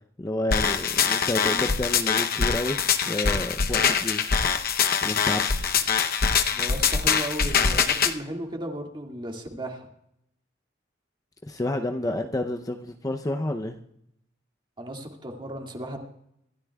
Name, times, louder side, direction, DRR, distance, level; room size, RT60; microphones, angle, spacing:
voice 1, 0.2-4.2 5.0-5.7 11.5-13.8, left 1 dB, 20° left, 4 dB, 0.6 m, -30 dB
sound 1, 0.5-8.1, left 6 dB, 50° left, 0.8 m, -23 dB
voice 2, 6.5-9.9 12.0-12.1 14.8-16.0, right 1 dB, 25° right, 1 dB, 2.1 m, -35 dB
25.5 x 13.0 x 2.3 m, 0.77 s
head